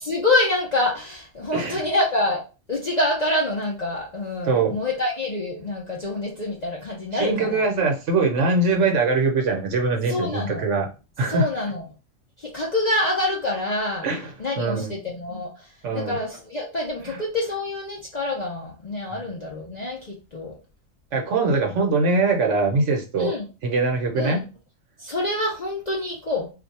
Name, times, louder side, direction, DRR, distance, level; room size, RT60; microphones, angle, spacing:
voice 1, 0.0-2.4 2.7-7.6 10.1-10.6 11.3-11.8 12.4-14.1 14.4-15.5 15.9-20.6 23.2-23.5 24.2-24.4 25.0-26.5, left 2 dB, 50° left, 0.5 m, -26 dB
voice 2, 1.5-1.9 4.5-4.8 7.1-10.9 11.2-11.5 14.0-14.9 15.8-16.2 17.0-17.2 21.1-23.3 23.6-24.4, right 3 dB, 65° right, 1.0 m, -22 dB
2.5 x 2.3 x 4.0 m
omnidirectional pair, 1.4 m